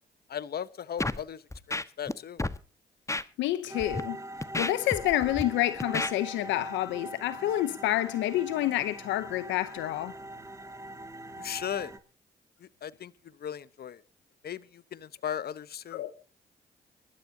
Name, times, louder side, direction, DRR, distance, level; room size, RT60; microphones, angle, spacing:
voice 1, 0.3-1.4 1.7-2.4 11.4-11.9 12.6-13.1 13.4-14.0 14.4-16.0, left 9 dB, 55° left, 0.9 m, -37 dB
Scratching (performance technique), 1.0-1.2 1.5-2.1 2.4-2.6 3.1-3.2 3.8-4.0 4.4-5.4 5.8-6.1, left 2 dB, 15° left, 1.3 m, -31 dB
voice 2, 3.4-4.2 4.6-10.1 15.9-16.1, left 14 dB, 85° left, 0.7 m, -28 dB
sound 1, 3.7-12.0, right 1 dB, 15° right, 2.0 m, -42 dB
24.0 x 12.5 x 2.8 m
supercardioid pair, 50°, 19 cm